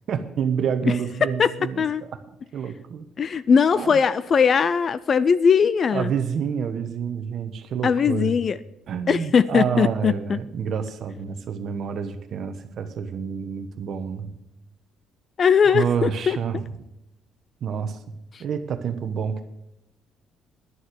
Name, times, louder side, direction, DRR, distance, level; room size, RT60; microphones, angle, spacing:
voice 1, 0.1-2.1 2.5-3.0 3.7-4.0 5.9-8.4 8.9-14.3 15.7-16.6 17.6-18.0 18.4-19.4, right 7 dB, 45° right, 9 dB, 1.0 m, -28 dB
voice 2, 3.2-6.1 7.8-8.6 9.1-10.4 15.4-16.4, left 6 dB, 30° left, 17 dB, 0.3 m, -20 dB
11.0 x 7.1 x 8.0 m, 0.85 s
cardioid pair, 170°, 0 cm